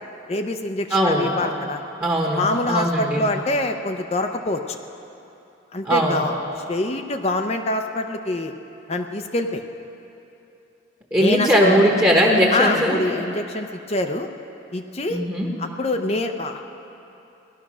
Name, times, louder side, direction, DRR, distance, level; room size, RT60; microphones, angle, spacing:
voice 1, 0.3-1.8 2.4-4.8 5.7-6.4 6.7-8.5 8.9-9.6 11.2-11.8 12.5-14.3 14.7-15.2 15.6-16.7, left 2 dB, 30° left, 5 dB, 0.6 m, -25 dB
voice 2, 0.9-1.3 2.0-3.3 5.8-6.2 11.1-13.0 15.1-15.5, equal, 15° right, -2 dB, 1.2 m, -19 dB
18.0 x 12.0 x 6.2 m, 2.8 s
head